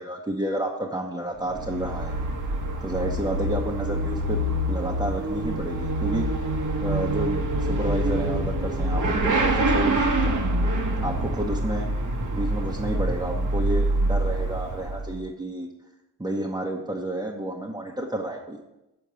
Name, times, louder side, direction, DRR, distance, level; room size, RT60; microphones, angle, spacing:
voice 1, 0.0-2.2 2.8-4.4 4.7-6.3 6.8-10.4 11.0-11.9 12.3-15.7 16.2-18.6, right 1 dB, 10° right, -1 dB, 1.0 m, -30 dB
Motorcycle / Accelerating revving vroom, 1.4-15.2, right 1 dB, 45° right, 1.3 m, -26 dB
7.0 x 4.5 x 6.2 m, 0.96 s
supercardioid pair, 50°, 41 cm